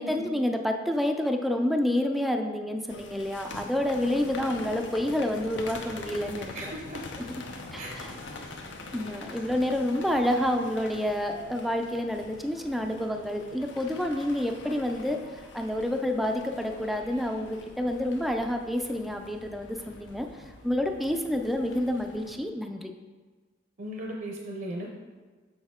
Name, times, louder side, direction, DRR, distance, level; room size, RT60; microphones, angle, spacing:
voice 1, 0.0-6.7 7.2-7.4 7.7-8.1 8.4-8.5 8.9-20.3 20.6-22.9, left 1 dB, ahead, 4 dB, 0.4 m, -29 dB
sound 1, 2.9-22.4, left 3 dB, 75° left, 0.7 m, -44 dB
voice 2, 6.5-7.0 7.8-8.0 23.8-24.9, right 1 dB, 50° right, 0 dB, 0.7 m, -37 dB
6.3 x 6.1 x 3.6 m, 1.4 s
head